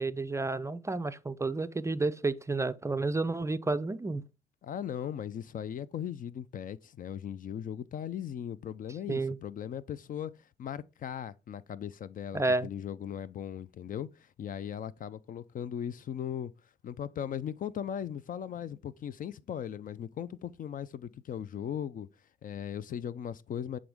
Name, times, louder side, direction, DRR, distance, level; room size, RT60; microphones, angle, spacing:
voice 1, 0.0-4.2 9.1-9.4 12.3-12.7, right 3 dB, 15° right, 0.4 m, -31 dB
voice 2, 4.6-16.5 16.8-22.1 22.4-23.8, left 9 dB, 45° left, 0.4 m, -38 dB
7.7 x 3.7 x 3.4 m
supercardioid pair, 70°, 19 cm